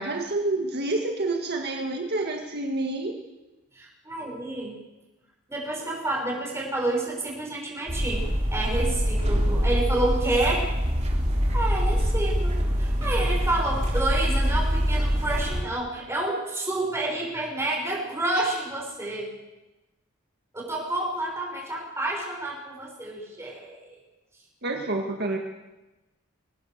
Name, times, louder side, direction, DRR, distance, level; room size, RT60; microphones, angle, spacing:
voice 1, 0.0-3.2 24.6-25.4, right 2 dB, 50° right, 3 dB, 1.8 m, -28 dB
voice 2, 3.7-4.7 5.5-8.2 8.5-10.7 11.5-19.3 20.5-23.9, right 2 dB, 15° right, -2 dB, 6.3 m, -29 dB
sound 1, 7.9-15.6, equal, 35° right, 3.5 m, -24 dB
23.5 x 18.0 x 6.7 m, 1.1 s
head